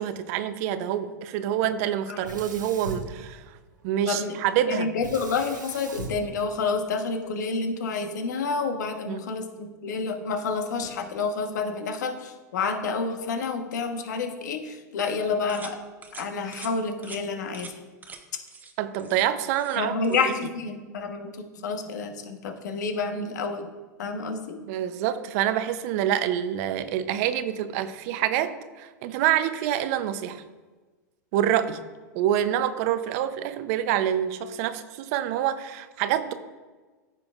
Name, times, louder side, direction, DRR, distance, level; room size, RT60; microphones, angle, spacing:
voice 1, 0.0-3.4 3.8-4.9 9.1-9.2 18.8-20.2 24.7-30.4 31.3-31.8 32.1-36.3, right 11 dB, 55° right, 11 dB, 0.7 m, -26 dB
Sink (filling or washing), 2.2-3.9 5.0-7.3, right 4 dB, 85° right, 1.2 m, -40 dB
voice 2, 4.7-15.8 16.1-17.7 19.8-23.7 24.0-24.6, left 4 dB, 70° left, 5 dB, 1.2 m, -29 dB
sound 1, 15.5-15.8 16.0-16.3 16.5-16.7 17.0-17.2 17.5-17.7 18.0-18.2 18.5-18.7 19.0-19.8 20.0-20.3, right 4 dB, 15° right, 1.0 m, -44 dB
14.5 x 5.8 x 2.5 m, 1.3 s
hypercardioid pair, 95°, 10 cm